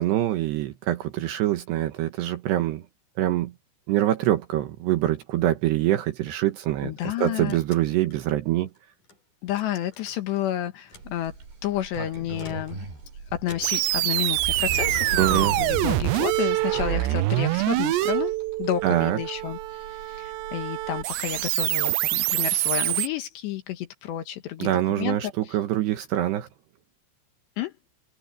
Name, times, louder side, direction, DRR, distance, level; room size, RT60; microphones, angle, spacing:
voice 1, 0.0-2.8 3.2-3.5 3.9-8.7 15.2-15.6 18.8-19.2 24.6-26.5, right 13 dB, 70° right, 2.9 m, -24 dB
voice 2, 6.8-7.6 9.4-11.3 11.6-12.9 13.3-18.3 18.6-19.6 20.1-25.6 27.6-27.7, left 12 dB, 70° left, 3.3 m, -30 dB
sound 1, 7.1-9.2 9.5-10.5 10.8-11.2 12.2-13.0 13.5-14.0 15.2-16.8 17.0-18.3, left 2 dB, 40° left, 9.5 m, -48 dB
Sliding door, 10.9-21.5, right 4 dB, 55° right, 8.1 m, -37 dB
sound 2, 13.6-23.1, right 18 dB, 90° right, 2.5 m, -25 dB
omnidirectional pair, 5.7 m